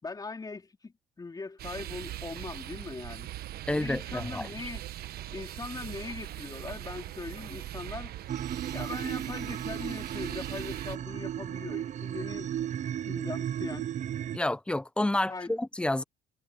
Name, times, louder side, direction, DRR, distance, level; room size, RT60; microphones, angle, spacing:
voice 1, 0.0-3.3 3.7-4.8 5.3-8.1 8.7-12.5 13.1-13.9 15.3-15.5, left 3 dB, 20° left, 4.0 m, -40 dB
sound 1, 1.6-11.0, right 13 dB, 65° right, 1.2 m, -41 dB
voice 2, 3.7-4.5 14.3-16.0, left 1 dB, 5° left, 0.8 m, -29 dB
sound 2, 5.0-12.7, right 16 dB, 85° right, 5.4 m, -57 dB
sound 3, 8.3-14.4, right 10 dB, 45° right, 0.6 m, -35 dB
cardioid pair, 110°, 17 cm